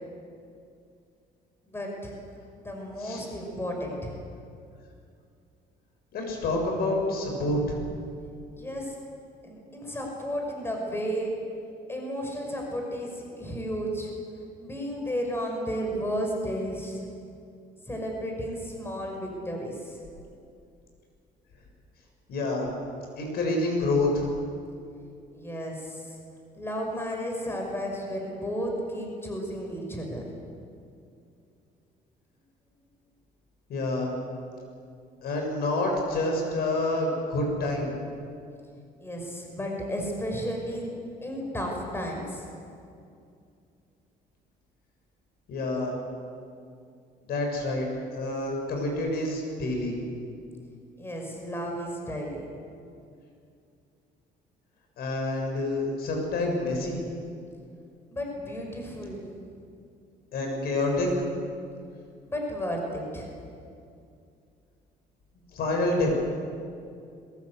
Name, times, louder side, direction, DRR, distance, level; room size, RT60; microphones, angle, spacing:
voice 1, 1.7-2.1 2.6-4.2 8.6-9.0 9.4-11.3 11.9-14.1 14.6-17.1 17.9-20.0 25.3-26.2 26.6-30.3 39.0-40.9 41.2-42.5 51.0-52.4 58.1-59.3 62.2-63.4, equal, 15° left, 1 dB, 5.9 m, -33 dB
voice 2, 6.1-7.8 22.3-22.7 23.2-24.3 33.7-34.1 35.2-37.9 45.5-46.0 47.3-50.0 55.0-57.0 60.3-61.1 65.5-66.1, left 2 dB, 70° left, 1 dB, 7.5 m, -27 dB
22.0 x 21.5 x 8.2 m, 2.4 s
cardioid pair, 110°, 17 cm